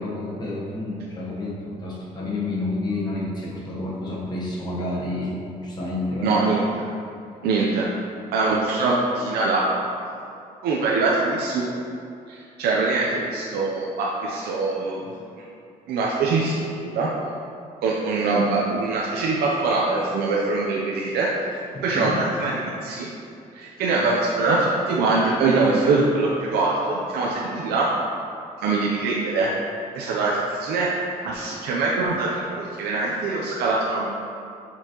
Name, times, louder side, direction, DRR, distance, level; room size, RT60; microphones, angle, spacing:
voice 1, 0.0-6.4 21.7-22.2, left 2 dB, 25° left, -5 dB, 1.2 m, -29 dB
voice 2, 6.2-6.6 7.4-7.9 8.3-9.6 10.6-11.7 12.3-15.2 15.9-17.1 17.8-21.3 21.8-22.5 22.8-23.1 23.5-27.9 28.6-29.5 29.9-30.9 31.2-34.1, right 3 dB, 85° right, -4 dB, 0.7 m, -23 dB
6.7 x 5.6 x 3.0 m, 2.5 s
cardioid pair, 165°, 16 cm